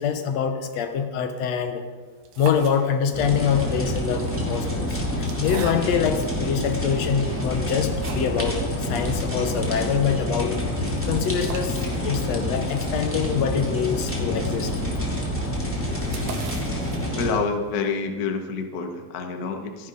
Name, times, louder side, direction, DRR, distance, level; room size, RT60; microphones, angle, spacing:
voice 1, 0.0-1.8 2.4-10.6 11.1-14.7, left 7 dB, 65° left, 7 dB, 2.0 m, -25 dB
sound 1, 2.1-3.3 4.2-6.2 6.8-6.9 7.4-8.6 8.9-9.0 9.2-9.3 9.7-17.6, right 4 dB, 75° right, 2.9 m, -41 dB
sound 2, 3.1-17.3, left 1 dB, 5° left, 2.4 m, -27 dB
voice 2, 17.2-19.9, left 4 dB, 80° left, 5 dB, 0.8 m, -27 dB
26.0 x 11.0 x 3.9 m, 1.5 s
omnidirectional pair, 3.6 m